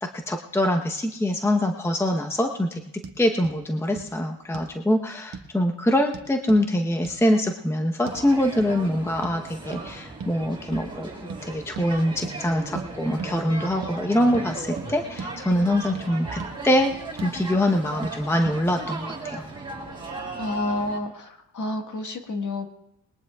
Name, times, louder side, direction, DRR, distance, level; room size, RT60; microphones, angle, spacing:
voice 1, 0.0-2.8 3.2-11.1 11.4-19.5, left 1 dB, 5° left, 4 dB, 0.9 m, -24 dB
sound 1, 3.0-3.2 3.4-3.6 4.0-4.1 4.5-4.8 5.3-5.5 6.1-6.6 7.0-7.2 8.1-8.2 8.6-8.7 9.2-9.4 9.7-9.9 10.2-10.4 10.7-10.9 11.3-11.4 11.8-11.9 12.2-12.4 12.8-12.9 13.2-13.4 13.8-14.0 14.3-14.5 14.8-14.9 15.2-15.3 15.6-16.1 16.4-16.5 16.9-17.4 18.0-18.2 18.5-18.6, right 5 dB, 50° right, 1.4 m, -37 dB
sound 2, 8.0-21.0, right 3 dB, 10° right, 5.3 m, -37 dB
voice 2, 20.4-22.7, left 2 dB, 45° left, 4 dB, 1.7 m, -29 dB
21.0 x 19.0 x 2.4 m, 0.82 s
cardioid pair, 95°, 43 cm